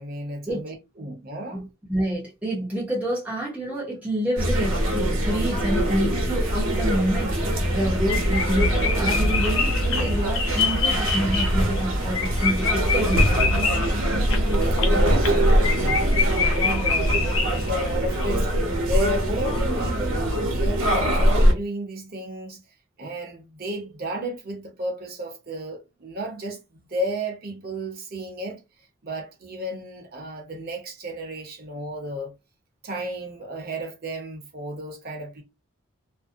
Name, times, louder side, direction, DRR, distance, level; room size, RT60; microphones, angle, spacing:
voice 1, 0.0-1.6 13.5-22.6 23.0-28.6 29.0-32.3 32.8-35.4, right 1 dB, 45° right, 0.7 m, -33 dB
voice 2, 1.5-13.6, equal, 5° right, 0.6 m, -28 dB
sound 1, 4.4-21.5, right 1 dB, 70° right, 0.8 m, -22 dB
sound 2, 6.9-7.0 7.3-7.4 7.7-7.8 8.1-17.9 18.2-18.3, left 6 dB, 65° left, 0.6 m, -27 dB
2.5 x 2.1 x 2.5 m
head